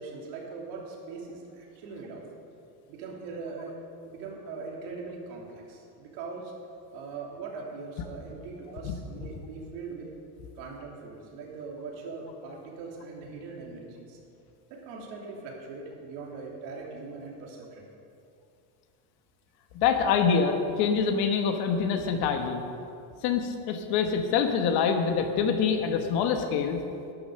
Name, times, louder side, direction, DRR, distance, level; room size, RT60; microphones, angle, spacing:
voice 1, 0.0-2.2 2.9-3.8 4.0-6.5 6.9-10.1 10.5-14.2 14.7-17.9, right 4 dB, 75° right, -1 dB, 3.2 m, -41 dB
voice 2, 19.7-22.6 23.2-26.8, left 6 dB, 55° left, 5 dB, 1.4 m, -25 dB
11.5 x 11.0 x 6.7 m, 2.6 s
cardioid pair, 170°, 46 cm